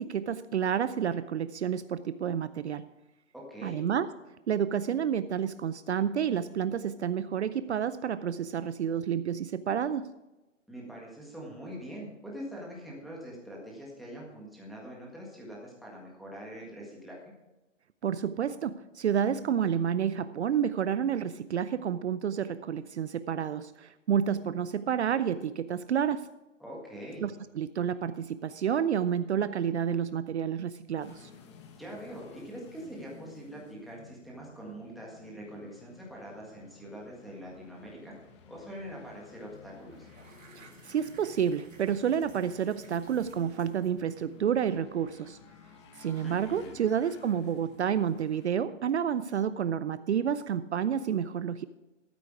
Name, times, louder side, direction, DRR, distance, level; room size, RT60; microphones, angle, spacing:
voice 1, 0.0-2.9 3.6-4.1 4.5-10.1 18.0-26.3 27.2-31.3 40.6-45.4 46.0-51.6, right 8 dB, 60° right, 14 dB, 0.5 m, -30 dB
voice 2, 3.3-3.9 10.7-17.2 26.6-27.3 31.8-38.1 38.5-40.1 46.2-46.9, equal, ahead, -4 dB, 1.7 m, -43 dB
sound 1, 31.0-48.6, left 6 dB, 25° left, 0.9 m, -55 dB
sound 2, 39.1-39.3 39.5-44.6, right 3 dB, 90° right, 2.2 m, -56 dB
13.0 x 8.3 x 4.8 m, 1.0 s
hypercardioid pair, 155°, 38 cm